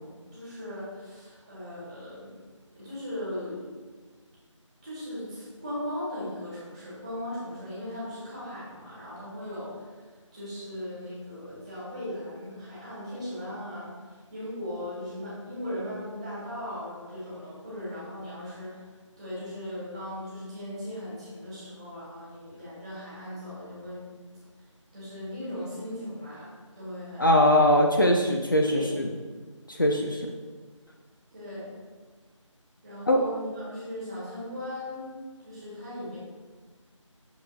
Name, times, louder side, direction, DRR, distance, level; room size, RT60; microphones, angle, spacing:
voice 1, 0.0-2.4 2.8-3.8 4.8-9.9 10.3-18.8 19.2-24.1 24.9-27.3 28.7-29.0 31.3-31.7 32.8-35.2 35.4-36.2, left 1 dB, 15° right, -9 dB, 1.8 m, -38 dB
voice 2, 27.2-29.1 29.7-30.3 33.1-33.2, left 1 dB, 40° left, 1 dB, 0.5 m, -21 dB
8.0 x 6.9 x 2.2 m, 1.4 s
figure-of-eight pair, 170°, 17 cm